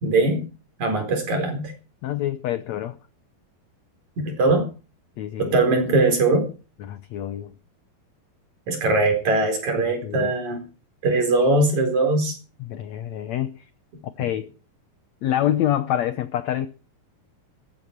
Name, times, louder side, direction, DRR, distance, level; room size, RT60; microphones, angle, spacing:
voice 1, 0.0-0.5 0.8-1.7 4.3-4.7 5.4-6.5 8.7-10.6 11.0-12.4, right 2 dB, 50° right, 5.5 m, -21 dB
voice 2, 2.0-3.0 5.2-5.6 6.8-7.5 9.8-10.3 12.6-13.5 14.2-14.5 15.2-16.7, left 12 dB, 80° left, 1.6 m, -26 dB
15.0 x 14.0 x 4.6 m
omnidirectional pair, 4.3 m